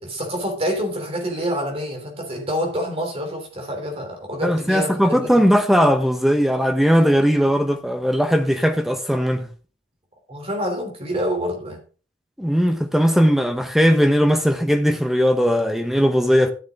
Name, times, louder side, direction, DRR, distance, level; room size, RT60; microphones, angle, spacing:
voice 1, 0.0-5.5 10.3-11.8, equal, 30° right, 3.2 m, -27 dB
voice 2, 4.4-9.5 12.4-16.5, equal, ahead, 1.1 m, -18 dB
13.0 x 6.8 x 3.6 m
head